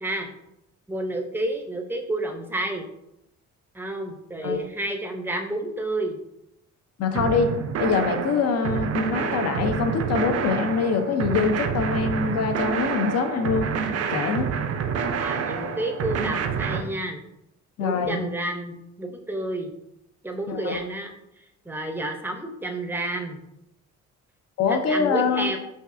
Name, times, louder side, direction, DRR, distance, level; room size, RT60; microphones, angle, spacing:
voice 1, 0.0-0.3 0.9-2.9 3.7-6.2 15.2-17.2 17.8-19.7 20.2-21.1 21.6-23.4 24.7-25.6, right 1 dB, 5° right, 4 dB, 0.6 m, -30 dB
voice 2, 7.0-7.5 7.8-13.7 14.1-14.5 17.8-18.2 20.5-20.8 24.6-25.5, left 5 dB, 55° left, 6 dB, 0.6 m, -24 dB
sound 1, 7.2-16.8, right 6 dB, 55° right, 0.5 m, -28 dB
5.1 x 2.4 x 2.5 m, 0.83 s
cardioid pair, 90°, 30 cm